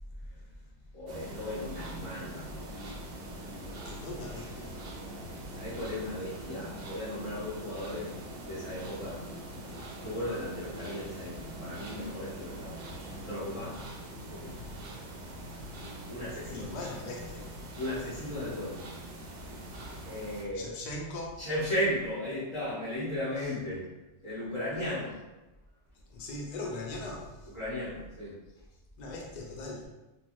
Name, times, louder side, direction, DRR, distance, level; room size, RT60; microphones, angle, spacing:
voice 1, 0.9-2.7 5.5-8.1 8.4-9.2 10.0-12.8 13.2-13.8 14.3-14.6 16.1-16.8 17.8-18.8 20.1-20.7 21.4-23.9 24.2-25.2 27.5-28.4, left 1 dB, 30° left, -12 dB, 0.8 m, -36 dB
sound 1, 1.1-20.4, right 1 dB, 60° right, 0.7 m, -43 dB
voice 2, 3.8-4.8 14.6-14.7 16.5-17.5 20.5-21.4 26.1-27.5 29.0-29.9, left 2 dB, 70° left, -1 dB, 0.4 m, -40 dB
3.1 x 2.3 x 2.5 m, 1.0 s
omnidirectional pair, 1.3 m